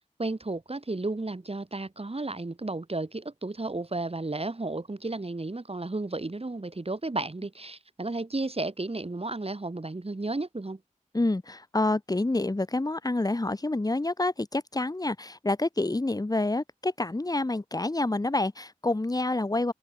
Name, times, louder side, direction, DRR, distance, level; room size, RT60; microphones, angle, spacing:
voice 1, 0.2-10.8, right 2 dB, 45° right, 3.9 m, -33 dB
voice 2, 11.1-19.7, left 2 dB, 30° left, 1.0 m, -28 dB
wide cardioid pair, 50°, 14 cm